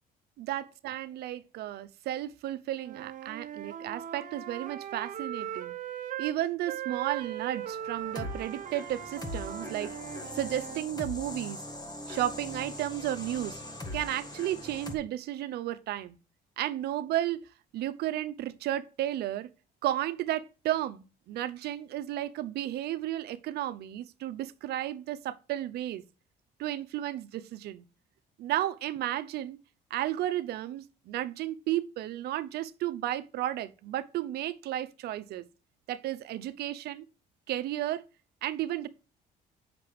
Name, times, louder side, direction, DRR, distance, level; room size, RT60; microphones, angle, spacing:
voice 1, 0.4-5.7 6.2-9.9 10.3-11.6 12.1-13.6 13.9-16.2 16.6-17.4 17.7-19.5 19.8-26.0 26.6-27.8 28.4-29.6 29.9-35.4 35.9-37.1 37.5-38.0 38.4-38.9, right 13 dB, 70° right, 0.8 m, -33 dB
Wind instrument woodwind instrument, 2.8-6.4 6.7-10.9, right 10 dB, 50° right, 1.0 m, -39 dB
sound 1, 7.6-15.0, left 1 dB, 25° left, 1.6 m, -41 dB
7.5 x 6.0 x 4.8 m
cardioid pair, 110°, 17 cm